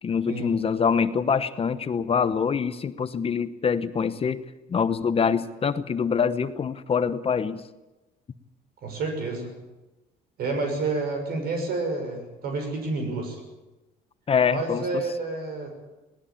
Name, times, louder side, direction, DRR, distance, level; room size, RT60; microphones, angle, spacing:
voice 1, 0.0-4.4 4.7-7.6 14.3-14.8, left 6 dB, 35° left, 12 dB, 1.0 m, -25 dB
voice 2, 8.8-9.5 10.4-13.4 14.5-15.7, right 3 dB, 65° right, 4 dB, 6.5 m, -29 dB
19.5 x 19.5 x 8.7 m, 1.0 s
cardioid pair, 110°, 17 cm